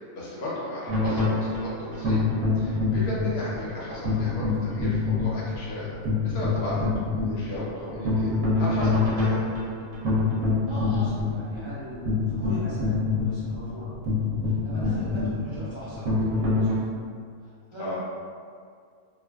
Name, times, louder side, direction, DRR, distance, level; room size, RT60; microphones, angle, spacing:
voice 1, 0.1-2.3 2.5-6.9 7.2-9.5 17.8-18.0, left 1 dB, 60° left, -7 dB, 0.9 m, -35 dB
sound 1, 0.9-16.8, left 3 dB, 80° right, 1.1 m, -26 dB
voice 2, 10.7-13.9 14.4-16.9 17.4-18.0, equal, 25° right, -13 dB, 0.9 m, -39 dB
2.4 x 2.4 x 2.2 m, 2.1 s
omnidirectional pair, 1.4 m